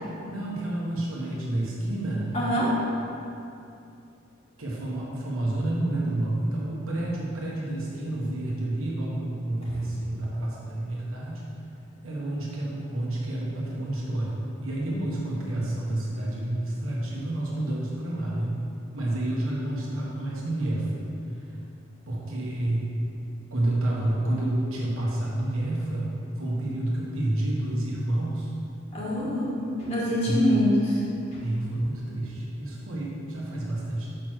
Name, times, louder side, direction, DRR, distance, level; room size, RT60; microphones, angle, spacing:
voice 1, 0.0-2.3 4.6-11.4 12.0-18.7 18.9-21.5 22.1-22.9 23.5-28.5 30.2-30.4 31.4-34.1, right 1 dB, 85° right, -4 dB, 1.4 m, -29 dB
voice 2, 2.3-2.8 9.7-10.0 14.9-15.0 28.9-31.0 31.3-31.4, equal, 30° left, -7 dB, 1.5 m, -25 dB
6.6 x 5.2 x 6.3 m, 2.5 s
head